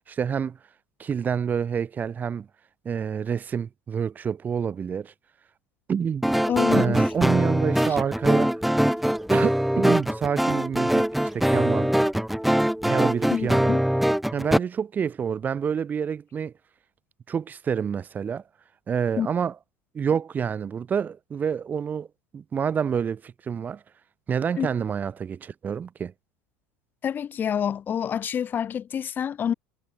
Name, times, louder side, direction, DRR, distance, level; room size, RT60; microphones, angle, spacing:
voice 1, 0.1-0.6 1.0-2.5 2.8-5.1 5.9-6.4 6.7-8.6 9.3-11.9 12.8-13.8 14.3-16.5 17.3-18.4 18.9-19.6 19.9-22.1 22.3-23.8 24.3-26.1, right 7 dB, 30° right, 0.9 m, -28 dB
sound 1, 6.2-14.6, equal, ahead, 0.8 m, -22 dB
voice 2, 6.5-7.1 13.3-13.8 19.2-19.3 24.6-24.7 27.0-29.5, left 8 dB, 35° left, 0.9 m, -27 dB
hypercardioid pair, 90°, 6 cm